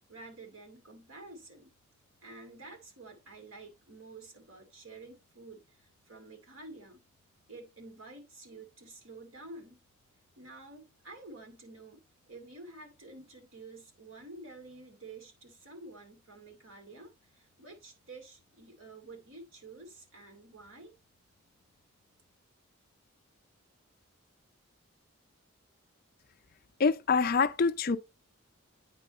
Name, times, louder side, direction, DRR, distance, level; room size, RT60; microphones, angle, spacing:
voice 1, 0.1-1.7 2.2-7.0 7.5-9.8 10.4-12.0 12.3-20.9, right 2 dB, 70° right, 2.5 m, -50 dB
voice 2, 26.8-28.0, left 5 dB, 45° left, 0.5 m, -25 dB
9.1 x 4.6 x 4.1 m
head